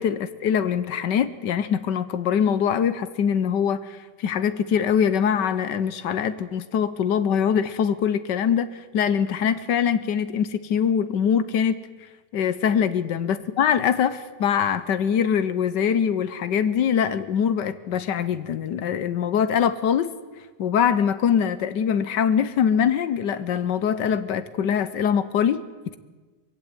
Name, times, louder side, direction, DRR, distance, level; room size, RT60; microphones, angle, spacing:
voice 1, 0.0-8.7 8.9-11.8 12.3-20.1 20.6-25.6, left 8 dB, 80° left, 14 dB, 1.5 m, -23 dB
22.5 x 16.0 x 9.6 m, 1.3 s
omnidirectional pair, 1.9 m